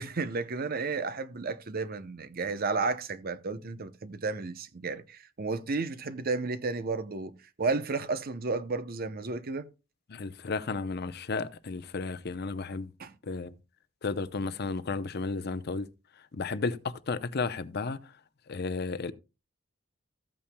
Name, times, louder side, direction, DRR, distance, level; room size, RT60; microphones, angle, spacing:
voice 1, 0.0-9.7 13.0-13.1, right 3 dB, 50° right, 0.7 m, -32 dB
voice 2, 10.1-12.9 13.2-13.6 14.0-15.9 16.3-18.1 18.5-19.1, left 4 dB, 55° left, 0.6 m, -33 dB
14.5 x 8.5 x 2.2 m
head